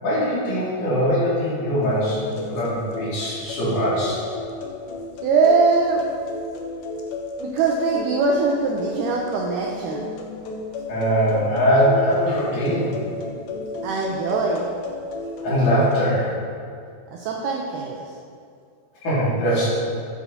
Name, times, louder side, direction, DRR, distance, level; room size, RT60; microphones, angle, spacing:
voice 1, 0.0-4.2 10.9-12.9 15.4-16.3 19.0-19.7, equal, 60° left, -9 dB, 3.4 m, -21 dB
sound 1, 1.8-16.0, left 3 dB, 90° left, 2.6 m, -33 dB
voice 2, 5.2-6.1 7.5-10.1 13.8-14.7 17.1-18.1, right 4 dB, 80° right, 0 dB, 1.8 m, -22 dB
8.9 x 7.4 x 2.7 m, 2.3 s
omnidirectional pair, 4.2 m